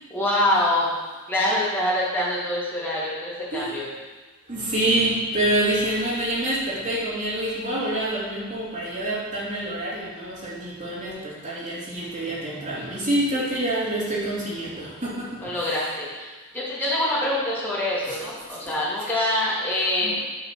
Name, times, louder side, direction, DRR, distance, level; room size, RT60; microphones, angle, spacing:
voice 1, 0.1-0.9 1.3-3.9 15.4-16.3 16.5-20.2, left 1 dB, 10° left, -8 dB, 2.8 m, -25 dB
voice 2, 4.5-15.8 18.1-18.2 18.7-18.8 20.0-20.2, right 1 dB, 35° right, -7 dB, 2.9 m, -27 dB
8.9 x 5.7 x 6.2 m, 1.3 s
head